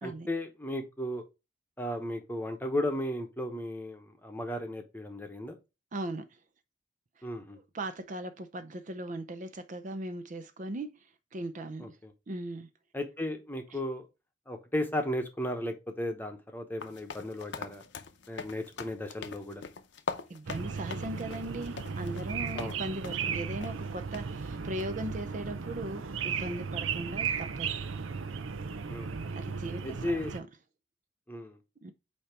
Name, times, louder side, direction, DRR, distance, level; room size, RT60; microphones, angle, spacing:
voice 1, 0.0-1.2 1.8-5.6 7.2-7.6 11.8-12.1 12.9-14.1 14.5-17.8 18.3-19.6 22.5-22.8 28.9-29.1 29.8-30.3 31.3-31.6, left 1 dB, 10° left, 1.0 m, -35 dB
voice 2, 5.9-6.4 7.2-7.3 7.5-12.0 12.3-12.7 13.7-13.8 20.3-27.8 29.4-30.5 31.8-31.9, right 1 dB, 40° right, 0.5 m, -39 dB
sound 1, 16.8-22.8 23.0-23.3 23.6-23.7 24.1-24.3 24.8-25.1, left 4 dB, 65° left, 0.7 m, -42 dB
sound 2, 20.5-30.4, right 6 dB, 85° right, 0.6 m, -36 dB
8.4 x 2.9 x 4.4 m
head